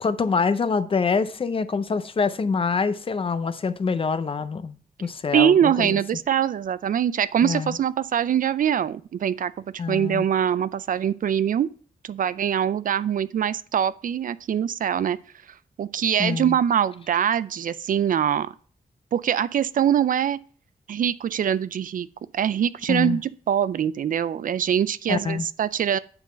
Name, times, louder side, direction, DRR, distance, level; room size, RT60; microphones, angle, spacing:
voice 1, 0.0-6.0 7.4-7.8 9.8-10.3 16.2-16.5 22.9-23.2 25.1-25.4, left 5 dB, 35° left, 0.5 m, -25 dB
voice 2, 5.3-11.7 12.0-15.2 15.8-18.5 19.1-20.4 20.9-22.1 22.3-26.0, right 9 dB, 65° right, 0.4 m, -23 dB
9.7 x 3.9 x 5.6 m
wide cardioid pair, 150°, 15 cm